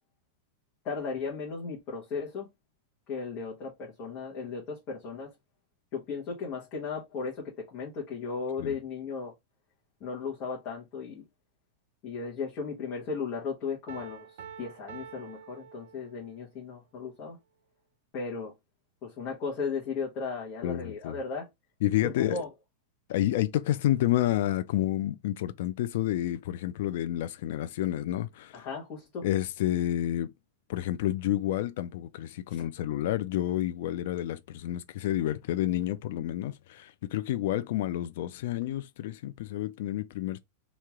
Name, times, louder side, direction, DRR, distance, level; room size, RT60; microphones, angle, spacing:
voice 1, 0.8-2.5 3.1-5.3 5.9-9.3 10.0-11.2 12.0-17.4 18.1-18.5 19.0-21.5 22.0-22.5 28.5-29.3, left 5 dB, 30° left, 1.2 m, -36 dB
Piano, 13.9-16.5, right 8 dB, 75° right, 0.6 m, -47 dB
voice 2, 20.6-21.2 21.8-22.4 23.1-28.7 29.2-30.3 30.7-40.4, left 13 dB, 55° left, 0.3 m, -29 dB
3.0 x 2.8 x 3.5 m
supercardioid pair, 165°, 0 cm